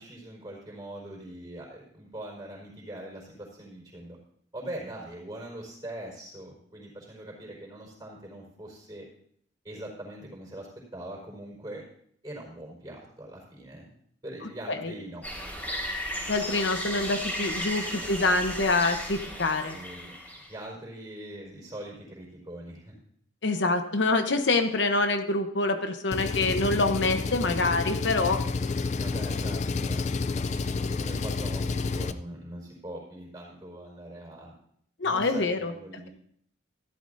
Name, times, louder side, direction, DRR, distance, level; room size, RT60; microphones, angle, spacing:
voice 1, 0.0-4.2 4.5-9.1 9.6-11.8 12.2-13.9 14.2-15.2 17.8-18.5 19.5-20.2 20.5-23.0 29.0-30.4 30.7-34.5 35.0-36.1, right 1 dB, 20° right, -3 dB, 4.4 m, -42 dB
sound 1, 15.2-20.5, equal, 10° left, 3.5 m, -35 dB
voice 2, 16.3-19.8 23.4-28.4 35.0-35.7, left 3 dB, 70° left, 7 dB, 0.9 m, -26 dB
Engine, 26.1-32.1, left 4 dB, 35° left, 0.4 m, -30 dB
14.5 x 12.5 x 2.6 m, 0.66 s
head